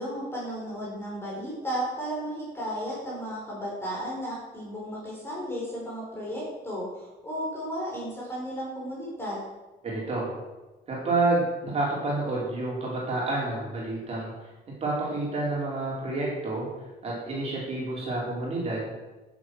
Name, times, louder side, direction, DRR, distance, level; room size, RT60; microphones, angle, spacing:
voice 1, 0.0-9.4, equal, 15° left, -5 dB, 4.9 m, -34 dB
voice 2, 9.8-10.3 10.9-14.3 14.8-16.7 17.0-18.9, right 2 dB, 35° right, -4 dB, 4.5 m, -29 dB
13.0 x 7.9 x 6.5 m, 1.1 s
cardioid pair, 160°, 18 cm